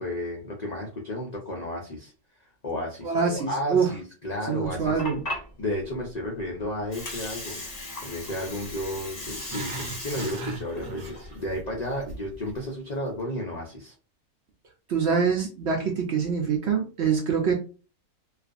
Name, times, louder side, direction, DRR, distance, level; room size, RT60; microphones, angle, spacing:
voice 1, 0.0-2.1 2.6-5.0 5.6-13.9, left 1 dB, 70° left, -2 dB, 0.4 m, -33 dB
voice 2, 3.0-3.9 4.5-5.2 14.9-17.5, right 6 dB, 65° right, 1 dB, 0.7 m, -25 dB
Water, 4.6-12.6, left 1 dB, 35° left, 0.8 m, -38 dB
Growling, 9.3-11.6 11.8-12.2 12.6-12.7, right 3 dB, 80° right, 1.1 m, -37 dB
2.4 x 2.4 x 2.4 m, 0.34 s
omnidirectional pair, 1.6 m